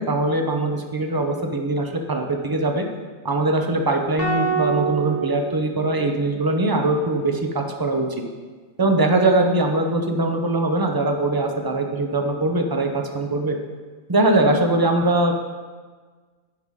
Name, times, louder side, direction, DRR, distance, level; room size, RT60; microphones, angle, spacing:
voice 1, 0.0-2.9 3.2-8.1 8.8-13.6 14.1-15.3, right 2 dB, 25° right, 3 dB, 0.6 m, -21 dB
sound 1, 4.2-6.5, right 5 dB, 10° left, 1.1 m, -26 dB
9.3 x 5.9 x 4.8 m, 1.4 s
omnidirectional pair, 1.4 m